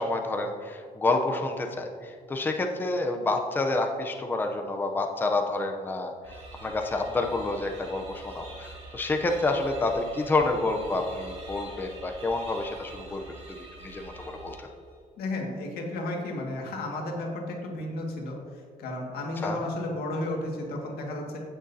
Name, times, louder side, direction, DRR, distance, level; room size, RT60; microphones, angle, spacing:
voice 1, 0.0-13.6 13.8-14.6 19.4-19.6, left 2 dB, 10° left, 3 dB, 0.5 m, -29 dB
sound 1, 6.2-14.9, right 2 dB, 35° right, 2.3 m, -46 dB
voice 2, 15.2-18.4 18.8-21.4, left 2 dB, 80° left, 0 dB, 1.8 m, -33 dB
16.0 x 6.4 x 2.7 m, 2.1 s
cardioid pair, 160°, 16 cm